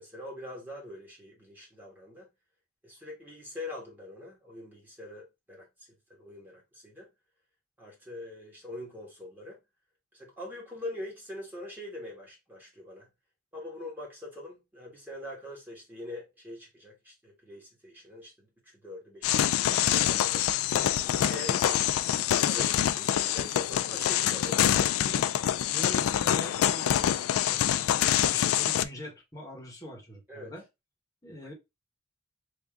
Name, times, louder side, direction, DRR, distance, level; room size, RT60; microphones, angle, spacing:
voice 1, 0.0-2.3 2.8-5.7 6.1-7.1 7.8-9.6 10.1-13.1 13.5-18.5 18.8-19.4 19.9-20.5 21.1-24.9 25.8-25.9 30.3-30.5, left 1 dB, 10° right, 1.3 m, -43 dB
sound 1, 19.2-28.8, left 11 dB, 85° left, 0.3 m, -26 dB
voice 2, 25.0-30.6 31.2-31.5, equal, 15° left, 1.1 m, -44 dB
3.5 x 2.6 x 3.4 m
head